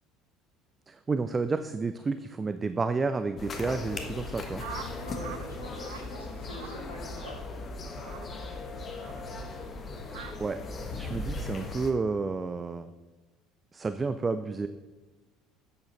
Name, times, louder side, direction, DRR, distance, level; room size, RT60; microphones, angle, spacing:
voice 1, 0.9-4.6 10.4-10.6 10.9-12.9 13.7-14.7, right 4 dB, 25° right, 11 dB, 0.5 m, -30 dB
sound 1, 3.4-11.9, left 3 dB, 35° left, 1.4 m, -38 dB
sound 2, 4.6-5.4 5.7-6.1 6.5-6.8 7.2-7.4 8.0-8.3 9.0-9.2 10.1-10.3, right 9 dB, 65° right, 0.6 m, -43 dB
voice 2, 5.0-7.4, left 1 dB, 80° left, -2 dB, 2.7 m, -44 dB
11.0 x 8.0 x 4.1 m, 1.2 s
figure-of-eight pair, 65°, 0 cm